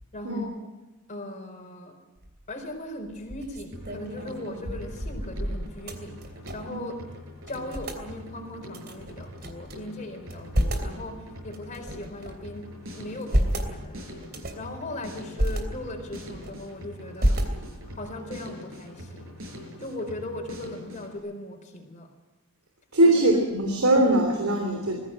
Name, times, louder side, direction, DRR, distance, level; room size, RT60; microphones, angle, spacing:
voice 1, 0.1-0.7 1.1-2.0 2.5-6.2 6.5-7.0 7.5-12.7 12.9-14.1 14.5-17.4 18.0-19.4 19.8-22.1 23.0-23.2 23.7-23.8, left 1 dB, 35° left, 3 dB, 4.3 m, -38 dB
sound 1, 2.2-2.5 3.0-6.8 7.1-7.2 7.4-8.0 8.7-9.7 10.2-10.9 11.5-12.5 13.0-13.7 14.2-14.7 15.2-15.6 16.1-16.7 17.2-17.9, equal, 50° right, 3.1 m, -29 dB
Drum kit, 3.7-21.2, equal, 65° right, 7.5 m, -43 dB
voice 2, 22.9-25.0, right 1 dB, 85° right, 2 dB, 3.2 m, -21 dB
21.0 x 15.5 x 9.1 m, 1.1 s
head